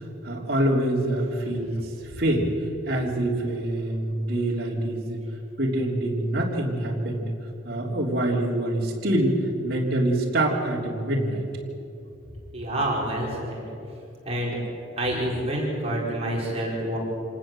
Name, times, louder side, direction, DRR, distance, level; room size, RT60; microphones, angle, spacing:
voice 1, 0.2-2.5 2.9-5.2 5.6-7.3 7.6-9.4 9.6-11.4, right 1 dB, 50° right, -3 dB, 3.3 m, -25 dB
voice 2, 12.5-13.6 14.2-14.6 15.0-17.0, right 1 dB, 30° right, -3 dB, 4.9 m, -27 dB
26.5 x 19.0 x 7.7 m, 2.8 s
head